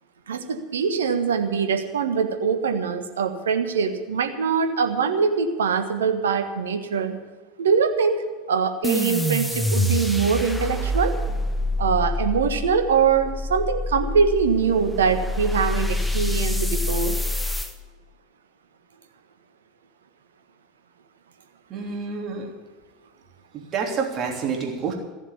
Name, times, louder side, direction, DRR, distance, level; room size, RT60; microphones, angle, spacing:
voice 1, 0.3-7.2 7.6-11.1 11.8-17.2, right 6 dB, 75° right, 7 dB, 1.4 m, -23 dB
sound 1, 8.8-17.7, left 1 dB, 5° left, 1.4 m, -26 dB
voice 2, 21.7-22.5 23.5-24.9, right 5 dB, 40° right, 1 dB, 3.3 m, -28 dB
15.5 x 7.3 x 9.8 m, 1.4 s
figure-of-eight pair, 80°, 0 cm